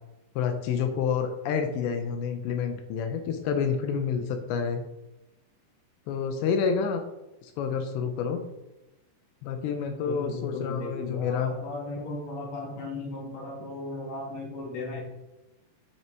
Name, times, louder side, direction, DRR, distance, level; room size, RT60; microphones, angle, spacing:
voice 1, 0.4-4.8 6.1-7.0 7.4-8.4 9.4-11.5, left 6 dB, 85° left, 6 dB, 3.0 m, -28 dB
voice 2, 10.1-15.0, left 2 dB, 45° left, -2 dB, 2.8 m, -36 dB
9.4 x 5.8 x 4.5 m, 0.98 s
omnidirectional pair, 5.0 m